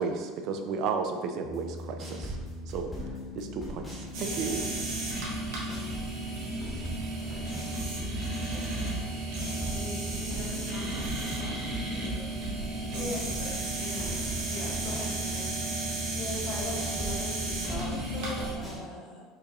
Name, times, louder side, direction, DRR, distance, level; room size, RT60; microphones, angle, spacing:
voice 1, 0.0-2.3 2.7-2.9 3.3-4.7, right 4 dB, 50° right, 5 dB, 0.4 m, -33 dB
sound 1, 1.4-18.8, equal, 5° left, 1.0 m, -40 dB
sound 2, 4.1-18.5, right 2 dB, 80° right, 1.1 m, -34 dB
voice 2, 8.5-9.1 9.7-11.6 11.9-12.2 12.9-15.5, left 2 dB, 60° left, -3 dB, 1.0 m, -44 dB
voice 3, 12.7-13.5 16.1-19.2, left 1 dB, 35° left, -5 dB, 1.1 m, -39 dB
4.6 x 2.5 x 2.9 m, 1.4 s
cardioid pair, 145°, 0 cm